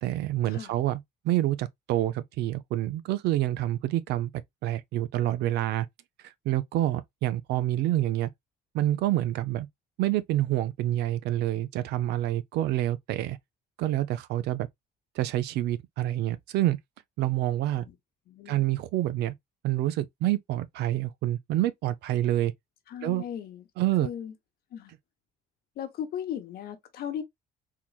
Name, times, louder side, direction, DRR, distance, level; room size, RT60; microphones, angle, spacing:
voice 1, 0.0-4.3 4.6-5.9 6.5-8.3 8.7-9.7 10.0-13.4 13.8-14.7 15.2-16.8 17.2-17.9 18.5-19.3 19.6-22.5 23.0-23.2 23.8-24.1, right 14 dB, 80° right, 0.5 m, -27 dB
voice 2, 18.3-18.6 22.9-23.6 24.0-24.3 24.7-24.9 25.8-27.2, left 9 dB, 65° left, 1.0 m, -37 dB
3.8 x 3.0 x 2.3 m
cardioid pair, 110°, 17 cm